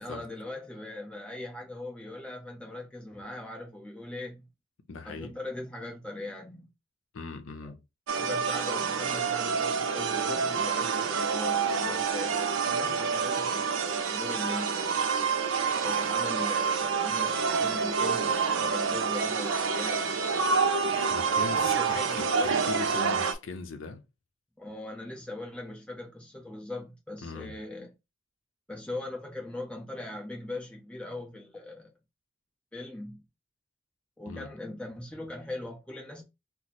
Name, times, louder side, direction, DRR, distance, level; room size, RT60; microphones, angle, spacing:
voice 1, 0.0-4.5 5.0-6.7 7.6-7.7 8.1-15.0 15.8-20.2 21.3-22.5 24.6-27.9 28.7-31.9 32.7-33.2 34.2-36.2, left 1 dB, 5° left, 0.6 m, -40 dB
voice 2, 4.9-5.4 7.1-7.8 21.1-24.0 27.2-27.6 34.3-34.5, left 4 dB, 80° left, 0.6 m, -40 dB
sound 1, 8.1-23.3, right 5 dB, 80° right, 0.5 m, -27 dB
2.9 x 2.0 x 4.1 m
head